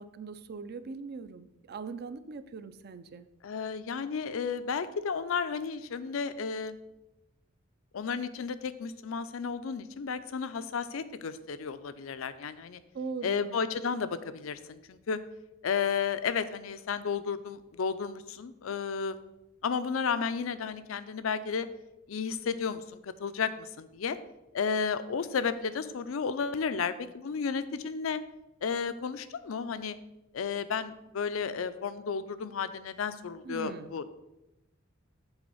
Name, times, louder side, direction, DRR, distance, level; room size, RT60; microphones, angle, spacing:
voice 1, 0.0-3.3 12.9-13.6 33.4-33.9, right 4 dB, 50° right, 12 dB, 0.4 m, -40 dB
voice 2, 3.4-6.8 7.9-12.8 13.2-15.2 15.6-19.2 19.6-21.7 22.1-24.2 24.5-28.2 28.6-30.0 30.3-34.0, left 6 dB, 80° left, 13 dB, 0.5 m, -33 dB
8.1 x 3.4 x 5.4 m, 0.92 s
head